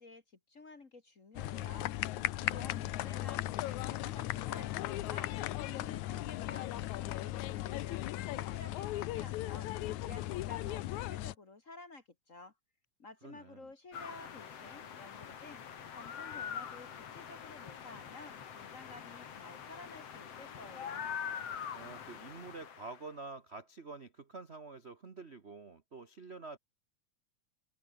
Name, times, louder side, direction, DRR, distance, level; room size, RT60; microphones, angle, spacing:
voice 1, 0.0-9.7 10.0-12.5 13.0-15.6 15.9-21.1, left 3 dB, 35° left, 1.5 m, -53 dB
sound 1, 1.4-11.4, left 15 dB, 80° left, 2.2 m, -37 dB
voice 2, 2.1-3.0 13.2-13.7 21.7-26.6, right 3 dB, 60° right, 0.6 m, -48 dB
sound 2, 13.9-23.1, left 8 dB, 55° left, 3.1 m, -44 dB
open air
omnidirectional pair, 3.5 m